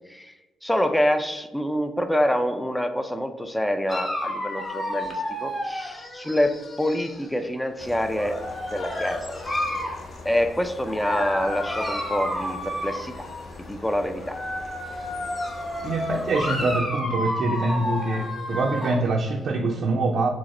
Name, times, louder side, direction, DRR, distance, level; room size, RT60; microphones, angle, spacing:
voice 1, 0.6-8.5 8.7-9.2 10.2-13.3 13.6-14.4, equal, 5° left, 8 dB, 0.4 m, -26 dB
Dog, 3.9-7.3 8.1-10.1 10.8-13.5 14.1-19.0, left 1 dB, 30° left, 0.9 m, -31 dB
sound 1, 7.8-16.8, left 2 dB, 50° left, 1.0 m, -42 dB
voice 2, 15.8-20.3, right 2 dB, 55° right, 1 dB, 0.5 m, -24 dB
4.8 x 2.1 x 4.1 m, 1.1 s
cardioid pair, 90°, 0 cm